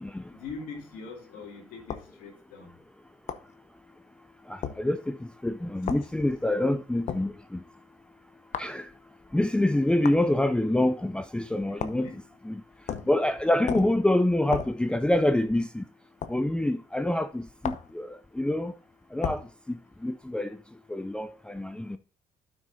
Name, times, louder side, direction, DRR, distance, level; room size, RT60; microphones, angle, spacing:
voice 1, 0.3-2.8 11.7-12.2 13.1-13.3, left 4 dB, 75° left, 2.5 m, -43 dB
sound 1, 1.9-2.1 3.3-3.5 4.6-4.8 5.9-6.1 7.1-7.3 8.5-8.8 10.0-10.2 11.8-12.1 12.9-13.2 13.7-14.0 14.5-14.8 16.2-16.4 17.6-17.9 19.2-19.5, left 8 dB, 55° left, 0.8 m, -33 dB
voice 2, 4.5-5.2 5.4-7.6 8.6-8.8 9.3-12.1 12.4-12.6 13.1-15.8 16.3-18.7 19.1-19.4 19.7-20.5 20.9-22.0, left 1 dB, 5° left, 0.6 m, -26 dB
12.0 x 6.1 x 2.7 m
hypercardioid pair, 60°, 15 cm